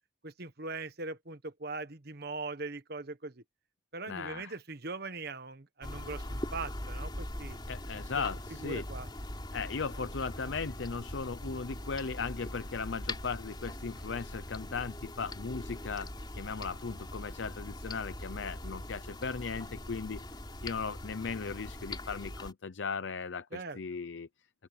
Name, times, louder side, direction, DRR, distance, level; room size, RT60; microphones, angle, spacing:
voice 1, 0.2-3.4 3.9-7.6 8.6-9.1 23.5-23.8, right 3 dB, 55° right, 1.4 m, -41 dB
voice 2, 4.1-4.6 7.7-8.8 9.5-24.3, left 5 dB, 70° left, 0.7 m, -37 dB
sound 1, 5.8-22.5, left 1 dB, 25° left, 3.4 m, -41 dB
open air
head